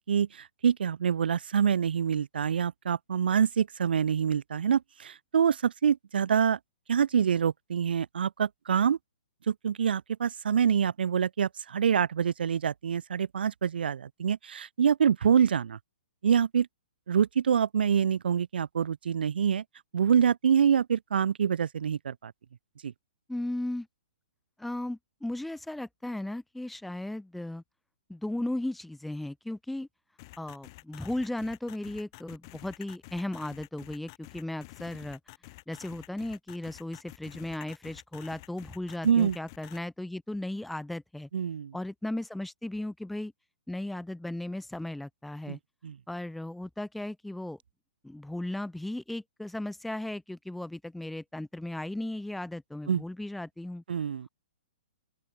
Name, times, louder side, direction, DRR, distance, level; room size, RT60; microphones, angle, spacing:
voice 1, 0.1-6.6 6.9-9.0 9.5-15.8 16.2-16.7 17.1-19.6 19.9-22.3 22.8-22.9 39.0-39.4 41.3-41.7 45.5-45.6 45.8-46.0 52.9-53.0 53.9-54.3, right 7 dB, 70° right, 2.4 m, -26 dB
voice 2, 23.3-23.9 24.6-27.6 28.1-29.9 30.4-35.2 35.7-41.3 41.7-43.3 43.7-45.6 46.1-47.6 48.0-53.8, left 1 dB, ahead, 5.4 m, -36 dB
sound 1, 30.2-39.8, left 23 dB, 25° left, 6.6 m, -49 dB
open air
hypercardioid pair, 175°, 6 cm